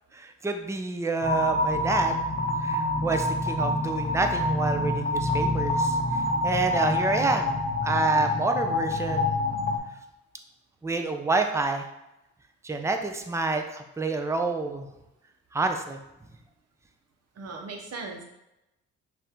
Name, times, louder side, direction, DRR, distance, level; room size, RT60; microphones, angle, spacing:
voice 1, 0.1-2.2 2.6-6.0 6.4-7.6 7.8-9.4 10.8-11.8 12.6-14.9 15.5-16.0, right 3 dB, 10° right, 5 dB, 0.5 m, -28 dB
sound 1, 1.2-9.8, left 1 dB, 30° left, 0.7 m, -27 dB
voice 2, 17.4-18.2, right 3 dB, 55° right, 2 dB, 1.0 m, -38 dB
5.3 x 2.7 x 3.6 m, 0.90 s
cardioid pair, 90°, 30 cm